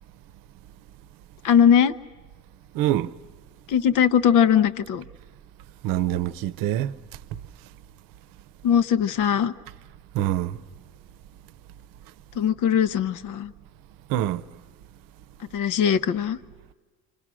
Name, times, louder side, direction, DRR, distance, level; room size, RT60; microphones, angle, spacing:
voice 1, 1.4-2.0 3.7-5.0 8.6-9.5 12.4-13.5 15.5-16.4, left 8 dB, 65° left, 0.9 m, -20 dB
voice 2, 2.7-3.1 5.8-6.9 10.1-10.6 14.1-14.4, right 12 dB, 85° right, 0.7 m, -24 dB
28.0 x 26.5 x 6.2 m
cardioid pair, 135°, 33 cm